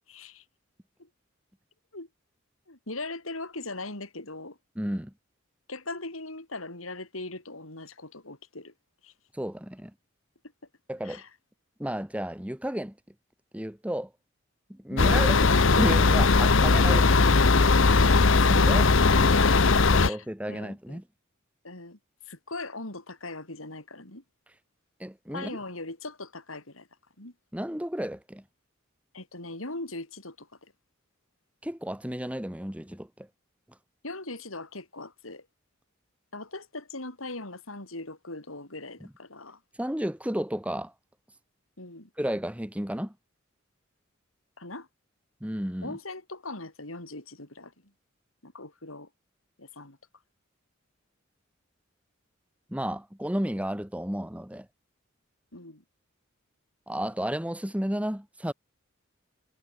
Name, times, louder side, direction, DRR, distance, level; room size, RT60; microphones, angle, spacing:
voice 1, 0.1-0.4 1.0-1.1 1.9-2.1 2.7-4.6 5.7-8.7 9.0-9.1 11.0-11.3 14.9-15.2 17.9-19.0 19.4-21.0 21.6-22.0 22.2-24.2 25.3-26.9 27.2-27.3 29.1-30.7 34.0-35.5 36.3-39.6 41.8-42.1 44.6-44.9 45.8-47.9 48.4-49.1 49.6-50.0 55.5-55.8, left 2 dB, 90° left, 5.9 m, -40 dB
voice 2, 4.8-5.1 9.3-9.9 10.9-11.2 11.8-12.9 13.5-14.1 14.7-17.2 18.5-18.9 19.1-19.3 19.9-21.0 25.0-25.6 27.5-28.4 31.6-33.3 39.8-40.9 42.2-43.1 45.4-46.0 52.7-54.7 56.9-58.5, equal, 5° right, 1.4 m, -32 dB
sound 1, 15.0-20.1, left 4 dB, 70° left, 0.9 m, -19 dB
head